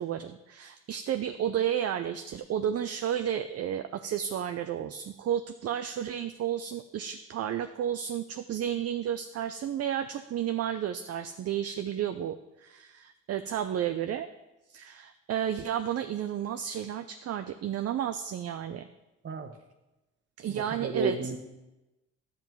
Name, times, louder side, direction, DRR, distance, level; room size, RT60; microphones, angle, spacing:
voice 1, 0.0-14.3 14.7-18.9 20.4-21.2, right 10 dB, 55° right, 8 dB, 0.5 m, -32 dB
voice 2, 20.5-21.4, right 4 dB, 40° right, 8 dB, 1.0 m, -32 dB
10.5 x 7.3 x 4.6 m, 1.0 s
cardioid pair, 90°, 30 cm